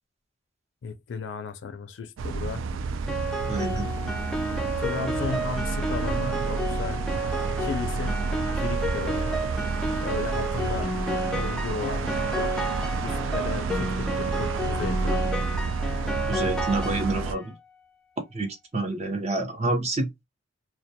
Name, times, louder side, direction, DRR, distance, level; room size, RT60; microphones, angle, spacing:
voice 1, 0.8-2.7 4.8-7.0 7.6-8.3 8.5-9.4 10.0-10.9 11.3-12.5 13.0-15.2, left 5 dB, 70° left, 0.4 m, -34 dB
sound 1, 2.2-17.3, right 4 dB, 85° right, 0.3 m, -30 dB
Piano, 3.1-17.5, right 1 dB, 5° left, 0.4 m, -31 dB
voice 2, 3.5-3.9 16.3-17.5 18.3-20.2, right 2 dB, 35° right, 0.7 m, -28 dB
2.2 x 2.2 x 2.6 m
head